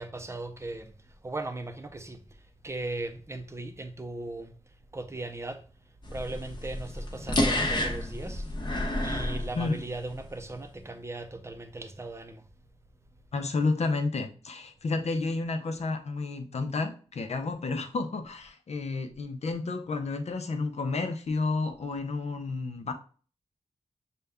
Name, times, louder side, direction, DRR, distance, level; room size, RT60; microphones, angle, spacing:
voice 1, 0.0-4.6 4.9-5.7 6.1-8.5 9.0-12.5, right 2 dB, 20° right, 0.6 m, -38 dB
sound 1, 6.0-10.2, left 1 dB, 40° left, 0.9 m, -30 dB
voice 2, 13.3-22.9, left 3 dB, 60° left, 0.6 m, -31 dB
6.6 x 2.3 x 3.5 m
wide cardioid pair, 95°, 12 cm